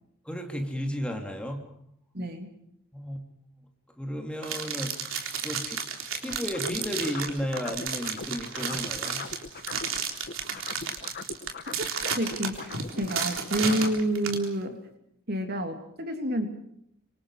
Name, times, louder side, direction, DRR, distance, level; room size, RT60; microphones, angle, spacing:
voice 1, 0.2-1.6 2.9-3.2 4.0-4.9 5.4-5.8 6.1-9.2, equal, 5° left, 3 dB, 3.1 m, -33 dB
voice 2, 2.1-2.5 11.8-11.9 12.2-14.8 15.3-16.5, right 1 dB, 50° right, 5 dB, 3.1 m, -29 dB
sound 1, 4.4-14.5, right 6 dB, 65° right, 3.8 m, -32 dB
sound 2, 6.3-10.0 10.2-14.0, left 4 dB, 45° left, 1.2 m, -40 dB
27.0 x 25.5 x 5.0 m, 0.72 s
head